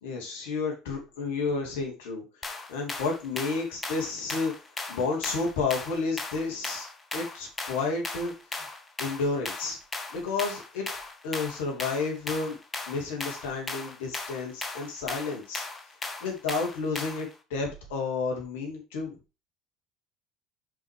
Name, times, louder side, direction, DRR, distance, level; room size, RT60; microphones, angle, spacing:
voice 1, 0.0-4.5 4.9-6.9 7.1-8.6 9.0-9.8 10.1-10.9 11.2-12.6 12.9-15.6 16.2-19.2, left 4 dB, 75° left, 0 dB, 2.8 m, -31 dB
sound 1, 2.4-17.3, left 3 dB, 25° left, 1.3 m, -37 dB
5.5 x 5.3 x 5.0 m, 0.30 s
hypercardioid pair, 70°, 0 cm